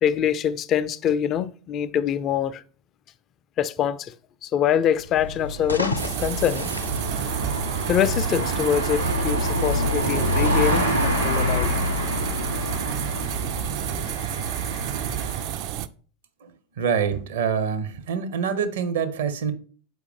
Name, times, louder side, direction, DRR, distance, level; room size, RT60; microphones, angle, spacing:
voice 1, 0.0-2.6 3.6-4.1 4.4-6.7 7.9-11.8, left 9 dB, 35° left, 0.3 m, -24 dB
sound 1, 5.0-15.6, left 1 dB, 80° right, 2.9 m, -27 dB
sound 2, 5.5-8.1, left 2 dB, 85° left, 0.5 m, -33 dB
sound 3, 6.0-15.9, right 12 dB, 45° right, 0.3 m, -30 dB
voice 2, 16.8-19.5, right 7 dB, 65° right, 0.7 m, -25 dB
6.4 x 4.8 x 3.4 m
figure-of-eight pair, 80°, 0 cm